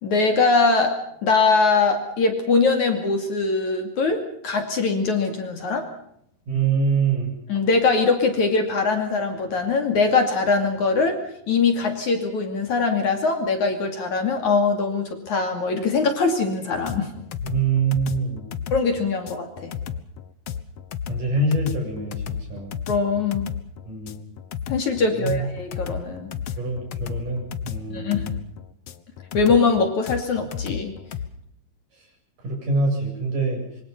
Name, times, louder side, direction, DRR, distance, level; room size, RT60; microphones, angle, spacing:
voice 1, 0.0-5.9 7.5-11.2 11.5-17.1 18.7-19.7 22.9-23.5 24.7-26.3 27.9-28.3 29.3-30.9, left 4 dB, 50° left, 5 dB, 3.7 m, -22 dB
voice 2, 6.5-7.3 17.4-18.5 21.1-22.7 23.8-24.2 25.2-25.4 26.6-28.3 32.4-33.6, right 4 dB, 55° right, 2 dB, 9.2 m, -24 dB
sound 1, 16.9-31.3, left 8 dB, 70° left, 1.5 m, -33 dB
26.5 x 24.5 x 5.5 m, 0.71 s
omnidirectional pair, 4.6 m